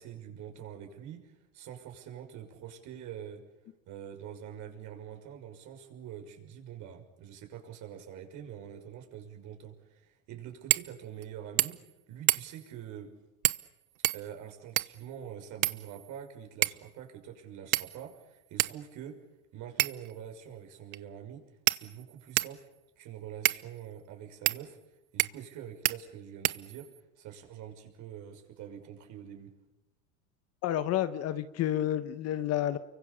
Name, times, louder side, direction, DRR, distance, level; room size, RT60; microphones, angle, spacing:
voice 1, 0.0-3.4 3.9-11.8 12.1-13.1 14.1-19.2 19.5-21.4 21.7-22.7 23.0-24.8 25.1-26.9 27.2-29.5, right 9 dB, 45° right, 4 dB, 6.1 m, -45 dB
sound 1, 10.7-10.9 11.2-11.3 11.6-11.9 12.3-12.7 13.4-13.7 14.0-15.1 15.6-16.2 16.6-16.9 17.7-18.1 18.6-18.7 19.8-20.1 20.9-21.0 21.7-22.6 23.5-23.6 24.5-24.6 25.2-25.5 25.9-26.0 26.4-27.0, right 19 dB, 80° right, 0.9 m, -29 dB
voice 2, 30.6-32.8, left 12 dB, 35° left, 12 dB, 1.3 m, -30 dB
29.5 x 24.0 x 7.0 m, 0.97 s
supercardioid pair, 140°, 41 cm